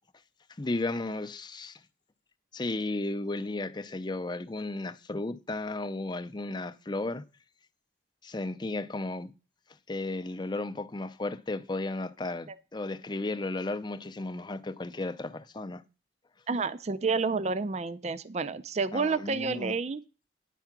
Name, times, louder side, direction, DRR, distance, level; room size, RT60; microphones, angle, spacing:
voice 1, 0.6-1.8 2.5-7.2 8.2-9.3 9.9-15.8 18.9-19.7, left 2 dB, 25° left, 0.5 m, -34 dB
voice 2, 16.5-20.0, right 4 dB, 35° right, 0.4 m, -30 dB
10.0 x 4.6 x 5.9 m
head